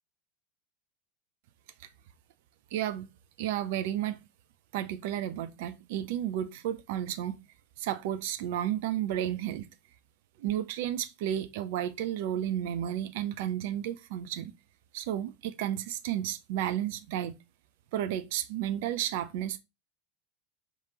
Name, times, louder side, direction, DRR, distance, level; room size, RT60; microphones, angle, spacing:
voice 1, 2.7-3.1 3.4-4.3 4.7-7.4 7.8-9.7 10.4-14.5 14.9-17.3 17.9-19.6, right 11 dB, 60° right, 0.5 m, -32 dB
4.9 x 2.9 x 2.8 m
figure-of-eight pair, 80°, 0 cm